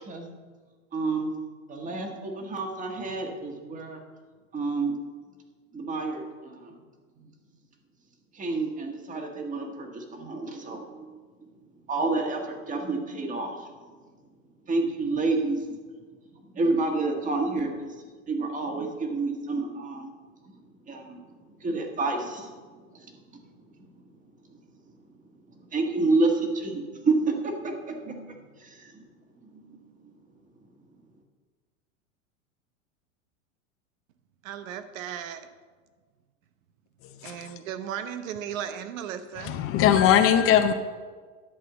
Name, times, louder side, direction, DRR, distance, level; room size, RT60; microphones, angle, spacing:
voice 1, 0.9-1.3 1.7-4.0 4.5-4.9 5.7-6.8 8.3-11.1 11.9-13.7 14.7-15.6 16.5-17.9 18.3-20.1 20.9-21.2 21.6-22.5 22.9-23.1 25.7-28.9, right 3 dB, 20° right, 3 dB, 1.5 m, -29 dB
voice 2, 34.4-35.5 37.2-39.6, right 9 dB, 80° right, 10 dB, 0.9 m, -36 dB
voice 3, 39.4-40.7, left 9 dB, 35° left, 8 dB, 0.7 m, -20 dB
11.0 x 4.3 x 7.2 m, 1.5 s
supercardioid pair, 125°, 40 cm